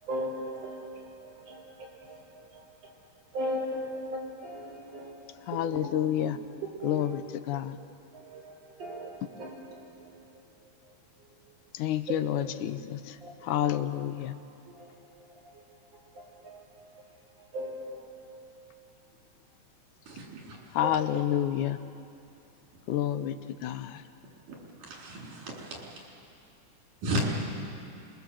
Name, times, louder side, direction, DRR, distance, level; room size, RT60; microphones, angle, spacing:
voice 1, 0.0-2.9 3.3-6.3 6.8-7.2 8.1-10.4 10.8-10.9 11.2-11.6 12.1-12.2 13.2-13.8 14.7-18.5 20.8-21.1, equal, 50° right, -2 dB, 5.6 m, -40 dB
voice 2, 5.5-6.4 6.8-7.1 7.5-7.6 11.8-12.2 12.6-13.0 13.5-14.3 20.8-21.8 22.9-23.3 23.6-23.9, left 11 dB, 80° left, 11 dB, 2.2 m, -28 dB
voice 3, 20.1-20.6 24.5-25.8 27.0-27.3, right 1 dB, 85° right, -2 dB, 5.6 m, -34 dB
26.5 x 21.5 x 7.6 m, 2.6 s
omnidirectional pair, 3.6 m